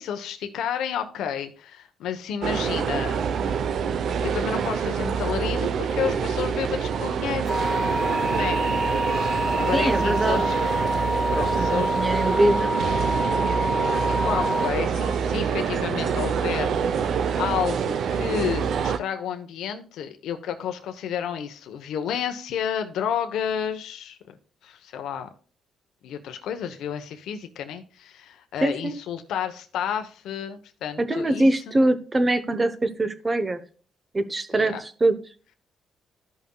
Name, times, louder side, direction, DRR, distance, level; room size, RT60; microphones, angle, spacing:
voice 1, 0.0-3.2 4.2-7.5 8.3-8.6 9.6-10.6 11.3-12.0 13.8-24.4 24.6-25.3 26.0-31.8 34.5-34.8, left 8 dB, 80° left, 7 dB, 0.9 m, -31 dB
sound 1, 2.4-19.0, right 6 dB, 65° right, 0.7 m, -26 dB
sound 2, 7.5-14.7, left 1 dB, 10° left, 0.4 m, -27 dB
voice 2, 9.7-10.5 11.3-12.8 28.6-29.0 31.0-33.6 34.1-35.2, right 1 dB, 25° right, 10 dB, 1.0 m, -23 dB
14.5 x 5.6 x 2.3 m, 0.40 s
cardioid pair, 90°, 0 cm